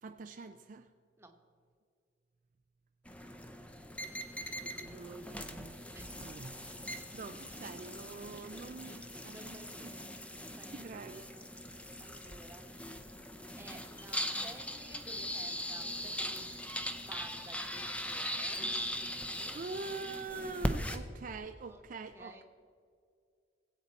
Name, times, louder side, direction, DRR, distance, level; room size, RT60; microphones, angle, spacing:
voice 1, 0.0-0.9 4.6-5.9 6.2-6.9 7.1-10.0 10.7-11.3 19.3-22.4, right 3 dB, 45° right, 7 dB, 0.4 m, -45 dB
sound 1, 3.1-21.0, equal, 5° left, 0.7 m, -40 dB
voice 2, 5.9-6.5 6.8-7.6 8.1-11.6 12.0-13.2 13.6-16.6 16.9-18.6 19.1-19.8 21.7-21.8 22.1-22.4, right 1 dB, 15° right, 3 dB, 1.1 m, -55 dB
21.0 x 8.2 x 4.2 m, 2.2 s
head